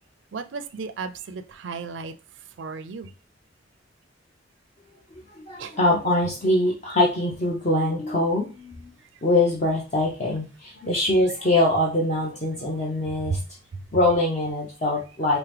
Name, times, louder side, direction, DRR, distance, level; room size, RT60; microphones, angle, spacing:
voice 1, 0.3-2.1 2.6-3.1 5.6-5.8 12.6-12.7 13.3-13.4, right 4 dB, 75° right, 0.4 m, -33 dB
voice 2, 5.3-8.9 9.2-13.4 13.9-15.4, left 1 dB, 40° left, 0.6 m, -23 dB
4.6 x 2.0 x 3.3 m
head